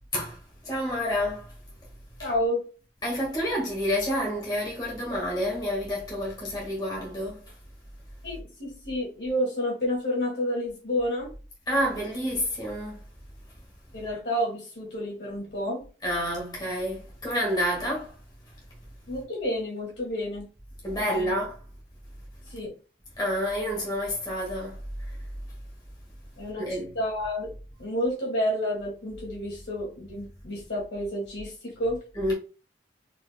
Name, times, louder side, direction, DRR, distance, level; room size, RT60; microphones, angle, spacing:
voice 1, 0.6-1.5 2.2-2.3 3.0-7.4 11.7-13.0 16.0-18.1 20.8-21.6 23.2-24.8 26.6-27.0 32.1-32.3, equal, 25° left, 1.6 m, -29 dB
voice 2, 2.2-2.6 8.2-11.3 13.9-15.8 19.1-20.5 21.0-21.3 22.5-22.7 26.4-27.5 27.8-32.0, equal, 75° left, 2.2 m, -30 dB
4.4 x 4.4 x 2.2 m
head